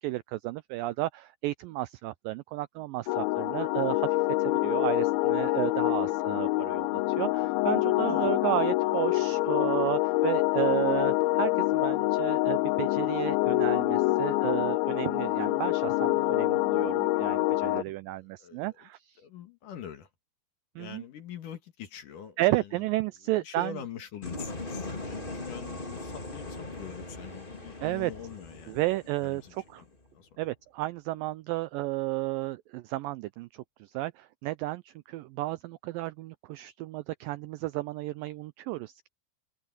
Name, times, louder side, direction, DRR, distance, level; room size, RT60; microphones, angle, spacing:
voice 1, 0.0-4.1 4.4-19.2 20.8-21.0 22.4-23.8 27.8-28.1 28.7-29.8 30.4-39.1, right 18 dB, 85° right, 2.0 m, -32 dB
sound 1, 3.1-17.8, left 20 dB, 85° left, 2.2 m, -26 dB
voice 2, 17.8-18.9 19.2-20.1 20.8-22.9 23.3-28.9 29.2-29.9 30.1-30.3, left 8 dB, 60° left, 3.1 m, -44 dB
sound 2, 24.2-30.1, left 2 dB, 15° left, 2.5 m, -40 dB
omnidirectional pair, 4.6 m